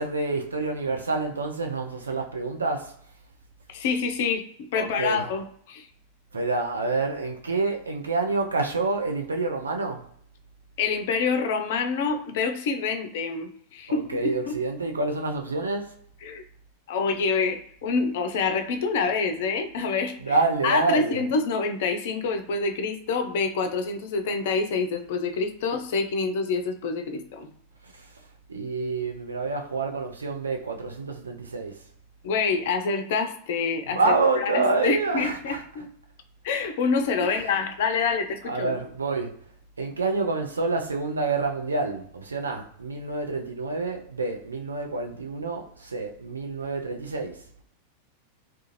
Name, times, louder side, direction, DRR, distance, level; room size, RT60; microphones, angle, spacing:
voice 1, 0.0-3.0 4.7-5.3 6.3-10.1 13.9-16.0 20.2-21.3 27.8-28.2 28.5-31.8 33.9-35.6 37.2-37.5 38.5-39.4 39.8-47.4, right 3 dB, 75° right, 0.4 m, -28 dB
voice 2, 3.7-4.5 4.7-5.9 10.8-14.2 14.5-14.6 16.2-16.4 16.9-20.2 20.6-27.5 32.2-34.0 34.4-35.9 36.4-38.7, left 4 dB, 55° left, 0.4 m, -27 dB
2.4 x 2.2 x 2.9 m
figure-of-eight pair, 90°, 0 cm